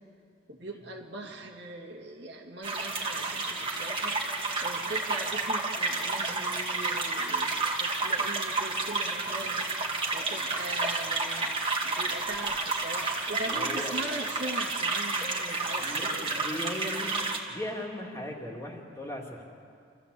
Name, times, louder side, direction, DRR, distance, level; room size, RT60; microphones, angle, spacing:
voice 1, 0.5-11.6 11.8-16.7, right 1 dB, 65° right, 2 dB, 2.1 m, -41 dB
sound 1, 2.6-17.4, right 3 dB, 25° right, 2.1 m, -30 dB
voice 2, 13.4-13.9 15.7-17.1 17.5-19.4, left 1 dB, 15° left, -1 dB, 2.4 m, -38 dB
28.0 x 15.0 x 8.4 m, 2.4 s
head